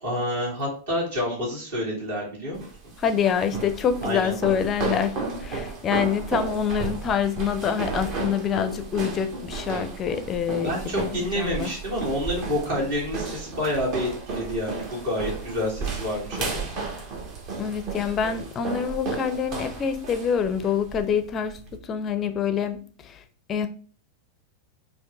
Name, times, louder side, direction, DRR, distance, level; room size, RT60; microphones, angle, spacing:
voice 1, 0.0-2.7 4.0-4.3 10.5-16.7, left 1 dB, 60° right, -3 dB, 2.1 m, -28 dB
sound 1, 2.5-21.8, right 4 dB, 40° right, 0.9 m, -33 dB
voice 2, 3.0-5.1 5.4-11.7 17.6-23.2 23.5-23.7, left 7 dB, 25° left, 10 dB, 0.5 m, -26 dB
4.5 x 2.6 x 3.4 m, 0.42 s
figure-of-eight pair, 90°, 0 cm